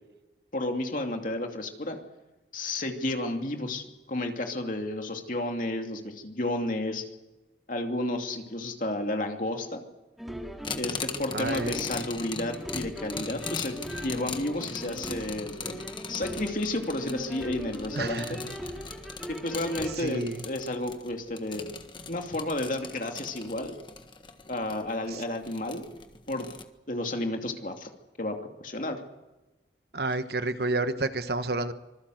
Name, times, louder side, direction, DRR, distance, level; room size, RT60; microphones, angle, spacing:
voice 1, 0.5-2.0 2.5-7.1 7.7-9.8 10.7-18.4 19.3-21.7 22.1-23.8 24.5-25.8 26.3-26.5 26.9-27.9 28.2-29.0, left 1 dB, 45° left, 4 dB, 2.7 m, -32 dB
sound 1, 10.2-20.0, equal, ahead, 2.5 m, -40 dB
sound 2, 10.6-26.6, left 4 dB, 25° left, 1.6 m, -40 dB
voice 2, 11.3-11.7 17.9-18.4 20.0-20.4 25.1-25.2 29.9-31.7, right 2 dB, 60° right, 10 dB, 1.3 m, -30 dB
25.5 x 20.5 x 7.9 m, 1.1 s
head